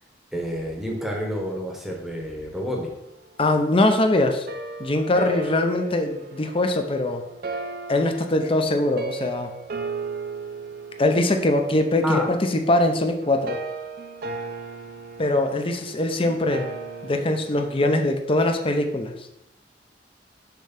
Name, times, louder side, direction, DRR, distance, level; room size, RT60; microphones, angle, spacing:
voice 1, 0.3-2.9 12.0-12.3, equal, ahead, -1 dB, 1.0 m, -29 dB
voice 2, 3.4-4.5 4.8-7.2 7.9-9.5 11.0-13.6 15.2-16.7 17.0-19.2, left 2 dB, 30° left, 5 dB, 0.6 m, -22 dB
sound 1, 4.5-17.9, right 3 dB, 60° right, 0.6 m, -36 dB
6.9 x 3.2 x 5.8 m, 0.83 s
head